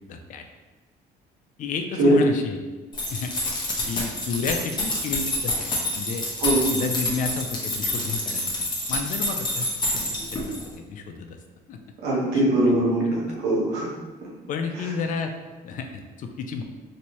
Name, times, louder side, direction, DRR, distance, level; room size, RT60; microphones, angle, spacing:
voice 1, 0.1-0.4 1.6-2.6 3.1-3.3 3.9-6.2 6.7-8.5 8.9-10.0 10.3-10.5 10.8-11.4 11.7-11.8 12.7-12.8 14.5-15.3 15.6-16.6, left 5 dB, 50° left, 5 dB, 0.4 m, -31 dB
sound 1, 2.9-10.7, left 1 dB, 25° left, 0.8 m, -28 dB
voice 2, 12.0-13.9 14.7-14.9, right 1 dB, 90° right, -5 dB, 1.1 m, -21 dB
3.1 x 2.6 x 2.9 m, 1.3 s
cardioid pair, 110°, 17 cm